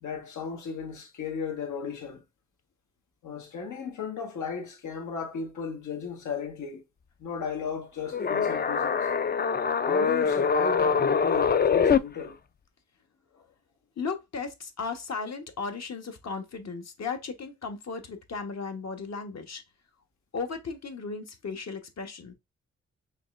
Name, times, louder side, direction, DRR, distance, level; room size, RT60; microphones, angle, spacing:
voice 1, 0.0-2.2 3.2-6.8 7.2-9.1 9.8-12.4 13.3-13.4, left 5 dB, 85° left, 1.4 m, -35 dB
sound 1, 8.1-12.0, left 6 dB, 35° left, 0.4 m, -24 dB
voice 2, 14.0-19.6 20.3-22.3, left 4 dB, 60° left, 1.1 m, -36 dB
5.1 x 3.2 x 2.5 m
cardioid pair, 55°, 29 cm